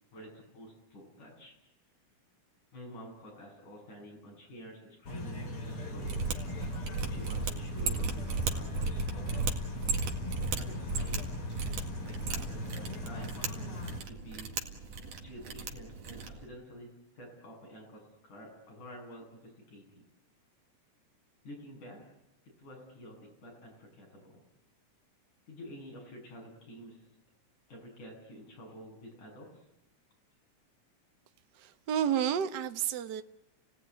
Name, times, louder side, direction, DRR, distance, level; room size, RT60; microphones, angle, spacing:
voice 1, 0.1-1.6 2.7-6.2 7.0-9.6 10.6-11.3 12.1-14.5 15.2-20.0 21.4-22.0 22.4-24.4 25.5-27.1 27.7-29.6, equal, 75° left, 0 dB, 9.4 m, -49 dB
sound 1, 5.1-14.0, left 1 dB, 45° left, 3.9 m, -39 dB
Mechanisms, 5.9-16.4, right 4 dB, 80° right, 3.6 m, -35 dB
voice 2, 31.5-33.2, right 9 dB, 60° right, 8 dB, 1.1 m, -31 dB
29.5 x 17.5 x 9.7 m, 0.90 s
omnidirectional pair, 3.5 m